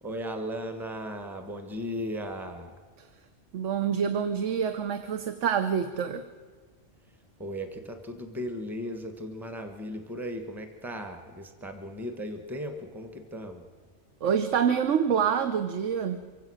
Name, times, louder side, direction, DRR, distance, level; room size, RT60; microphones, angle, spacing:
voice 1, 0.0-2.7 7.4-13.7, equal, ahead, 7 dB, 1.4 m, -36 dB
voice 2, 3.5-6.2 14.2-16.3, right 7 dB, 80° right, 9 dB, 1.2 m, -27 dB
25.0 x 16.5 x 6.4 m, 1.5 s
omnidirectional pair, 1.3 m